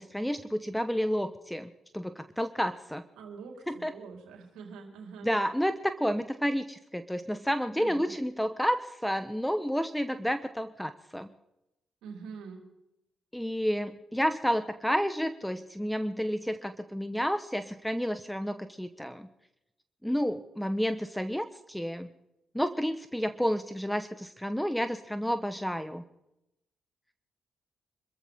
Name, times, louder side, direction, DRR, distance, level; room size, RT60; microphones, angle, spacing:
voice 1, 0.0-3.0 3.7-3.9 5.2-11.3 13.3-19.3 20.0-22.1 22.5-26.0, equal, 5° left, 10 dB, 1.2 m, -30 dB
voice 2, 3.2-5.3 7.8-8.1 12.0-12.7, right 5 dB, 80° right, 1 dB, 4.1 m, -45 dB
26.5 x 14.5 x 3.7 m, 0.86 s
hypercardioid pair, 50°, 0 cm